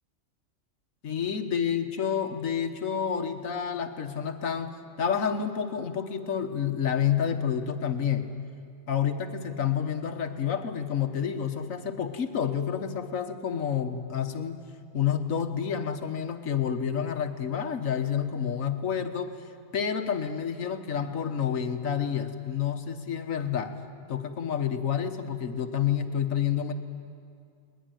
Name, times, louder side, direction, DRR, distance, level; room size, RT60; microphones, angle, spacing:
voice 1, 1.0-4.7 5.0-8.3 8.9-14.6 14.9-19.3 19.7-23.8 24.1-26.7, left 8 dB, 75° left, 7 dB, 1.5 m, -29 dB
22.0 x 20.0 x 9.1 m, 2.3 s
omnidirectional pair, 1.4 m